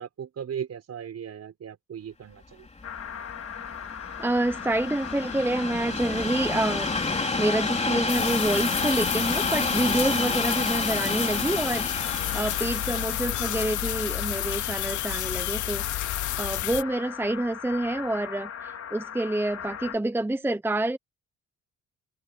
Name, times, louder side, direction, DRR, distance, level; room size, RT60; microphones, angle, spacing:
voice 1, 0.0-2.7, right 8 dB, 55° right, 5.9 m, -37 dB
Train, 2.7-15.9 16.6-16.7, left 3 dB, 20° left, 3.3 m, -30 dB
sound 1, 2.8-20.0, left 8 dB, 55° left, 4.6 m, -39 dB
voice 2, 4.2-15.9 16.4-21.0, right 1 dB, 5° right, 0.9 m, -28 dB
sound 2, 8.1-16.8, left 14 dB, 75° left, 0.9 m, -31 dB
open air
cardioid pair, 90°, 30 cm